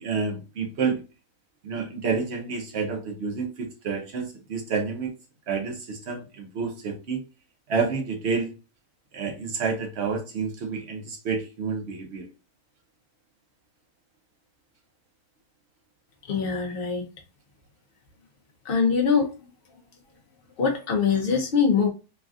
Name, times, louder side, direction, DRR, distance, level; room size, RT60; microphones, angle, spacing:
voice 1, 0.0-1.0 1.6-5.1 5.5-7.2 7.7-8.5 9.1-12.3, right 5 dB, 55° right, 0.7 m, -29 dB
voice 2, 16.3-17.0 18.6-19.3 20.6-21.9, left 6 dB, 90° left, 0.5 m, -23 dB
3.2 x 2.3 x 2.4 m
omnidirectional pair, 1.8 m